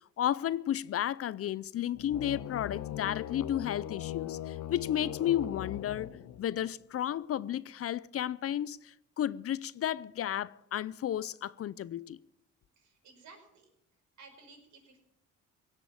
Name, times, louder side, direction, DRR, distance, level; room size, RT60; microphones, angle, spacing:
voice 1, 0.2-6.1 6.4-12.2, left 11 dB, 50° left, 0.5 m, -33 dB
sound 1, 1.9-6.7, left 11 dB, 75° left, 1.0 m, -40 dB
voice 2, 12.8-13.7 14.2-15.0, right 4 dB, 65° right, 5.5 m, -55 dB
17.5 x 7.6 x 8.8 m
cardioid pair, 90°, 30 cm